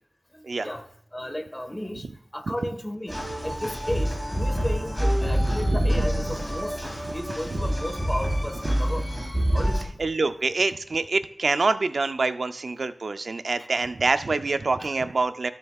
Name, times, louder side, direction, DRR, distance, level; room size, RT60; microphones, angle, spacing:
voice 1, 0.3-2.1 2.3-6.9 7.1-9.1 9.5-9.9 13.7-13.8 14.8-14.9, left 1 dB, 15° left, 7 dB, 1.4 m, -34 dB
sound 1, 3.1-9.8, equal, ahead, 3.3 m, -26 dB
voice 2, 10.0-15.5, right 3 dB, 85° right, 10 dB, 0.4 m, -25 dB
16.0 x 7.0 x 2.3 m, 0.69 s
wide cardioid pair, 60°, 0 cm